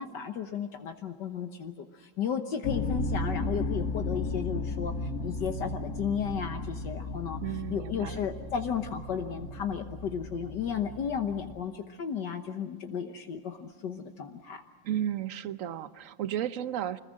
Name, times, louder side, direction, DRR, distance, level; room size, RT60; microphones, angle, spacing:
voice 1, 0.0-4.9 5.2-7.4 7.7-14.6, left 7 dB, 65° left, 6 dB, 1.7 m, -34 dB
sound 1, 2.6-11.6, left 2 dB, 50° left, 1.4 m, -35 dB
voice 2, 7.4-8.2 14.8-17.0, right 11 dB, 55° right, 13 dB, 1.0 m, -33 dB
25.5 x 20.5 x 7.7 m, 1.5 s
omnidirectional pair, 2.0 m